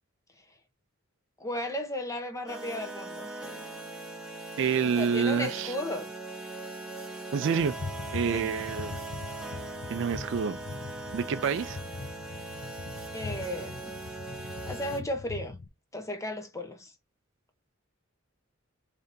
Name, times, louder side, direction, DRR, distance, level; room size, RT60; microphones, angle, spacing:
voice 1, 1.4-3.3 5.0-6.1 8.3-8.6 13.1-13.9 14.7-15.6 15.9-16.9, left 1 dB, 15° left, 0.8 m, -35 dB
sound 1, 2.5-15.0, right 2 dB, 5° right, 1.0 m, -40 dB
voice 2, 4.6-5.7 7.3-7.7 8.1-9.0 9.9-10.6 11.1-11.8, right 6 dB, 60° right, 0.4 m, -28 dB
sound 2, 7.6-15.7, left 3 dB, 60° left, 0.7 m, -41 dB
3.4 x 2.7 x 3.7 m
head